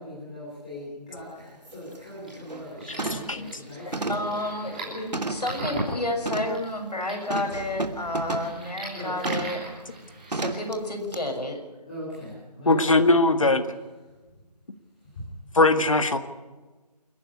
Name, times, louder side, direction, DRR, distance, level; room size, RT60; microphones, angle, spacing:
voice 1, 0.0-4.3 8.9-9.4 11.9-13.0 15.1-15.2, left 1 dB, 10° left, -8 dB, 3.4 m, -40 dB
sound 1, 1.2-1.3 1.7-2.0 2.3-2.7 3.0-3.4 3.9-5.6 6.2-6.6 7.3-8.6 9.2-9.6 10.3-10.7 11.1-11.2, right 2 dB, 75° right, 2.8 m, -32 dB
sound 2, 2.1-10.6, right 2 dB, 10° right, 3.1 m, -40 dB
voice 2, 3.1-3.5 3.9-4.0 12.7-13.6 15.6-16.2, left 2 dB, 50° left, 8 dB, 1.8 m, -20 dB
voice 3, 4.1-9.7 10.3-11.6, left 1 dB, 70° left, 2 dB, 6.8 m, -31 dB
28.0 x 10.5 x 9.9 m, 1.2 s
figure-of-eight pair, 180°, 21 cm